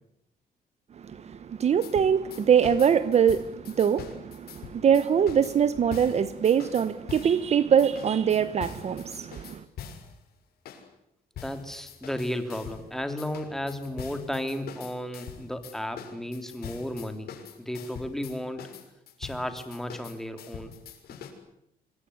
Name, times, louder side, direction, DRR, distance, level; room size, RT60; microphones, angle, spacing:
voice 1, 0.9-9.6, right 8 dB, 45° right, 1.1 m, -23 dB
sound 1, 1.8-7.4 7.8-10.1 10.7-10.8 11.4-12.9 13.2-21.3, left 8 dB, 80° left, 6.5 m, -43 dB
voice 2, 11.4-17.3 17.6-18.6 19.2-20.7, left 1 dB, ahead, 3.3 m, -34 dB
26.0 x 22.5 x 10.0 m
cardioid pair, 145°, 16 cm